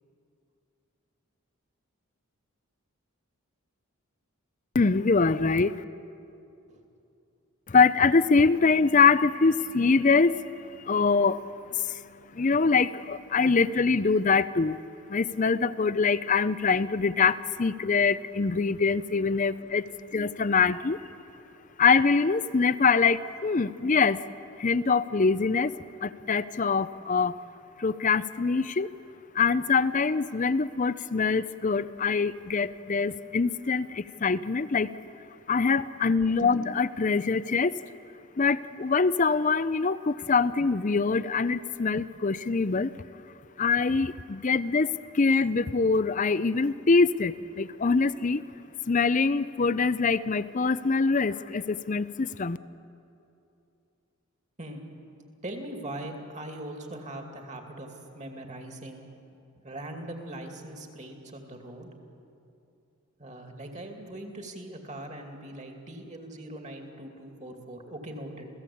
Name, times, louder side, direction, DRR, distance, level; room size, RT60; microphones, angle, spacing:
voice 1, 4.7-5.8 7.7-11.4 11.7-14.8 15.1-21.0 21.8-24.2 24.6-25.7 26.0-27.3 27.8-28.9 29.3-34.9 35.5-37.7 38.4-42.9 43.6-48.4 48.9-52.6, left 4 dB, 35° left, 16 dB, 0.5 m, -24 dB
voice 2, 55.4-59.0 59.6-61.9 63.2-68.5, right 1 dB, 30° right, 3 dB, 2.5 m, -41 dB
28.0 x 17.0 x 8.6 m, 2.7 s
head